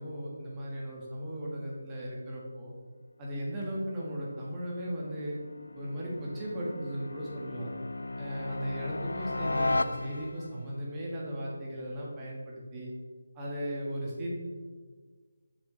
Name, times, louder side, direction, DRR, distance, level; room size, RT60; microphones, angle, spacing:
voice 1, 0.0-2.7 3.2-5.4 5.7-7.7 8.2-12.9 13.3-14.3, equal, 15° right, -5 dB, 1.5 m, -36 dB
sound 1, 4.2-10.6, left 2 dB, 75° left, 0.3 m, -36 dB
6.8 x 6.3 x 3.3 m, 1.5 s
figure-of-eight pair, 155°, 0 cm